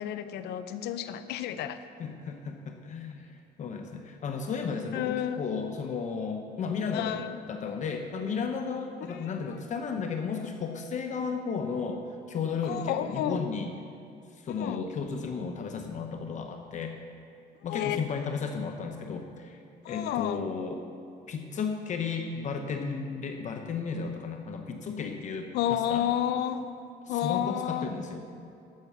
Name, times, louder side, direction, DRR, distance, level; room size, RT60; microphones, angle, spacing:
voice 1, 0.0-1.8 4.9-5.4 6.9-7.3 9.4-9.6 12.6-13.4 14.6-14.8 17.7-18.0 19.8-20.4 25.5-26.6 27.1-27.9, left 11 dB, 80° left, 11 dB, 0.6 m, -30 dB
voice 2, 2.0-7.2 7.5-13.7 14.3-17.0 17.6-20.9 21.3-26.1 27.1-28.2, left 5 dB, 45° left, 4 dB, 0.8 m, -34 dB
13.0 x 5.9 x 6.9 m, 2.5 s
cardioid pair, 110°, 17 cm